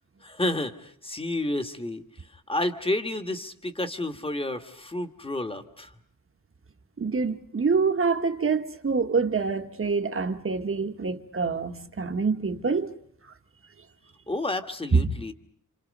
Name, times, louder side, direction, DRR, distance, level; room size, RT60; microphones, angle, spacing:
voice 1, 0.2-2.0 2.5-5.9 14.3-15.3, left 1 dB, 15° left, 1.6 m, -30 dB
voice 2, 7.0-12.9 14.9-15.2, right 4 dB, 40° right, 1.5 m, -26 dB
29.5 x 27.5 x 5.4 m
wide cardioid pair, 125°, 32 cm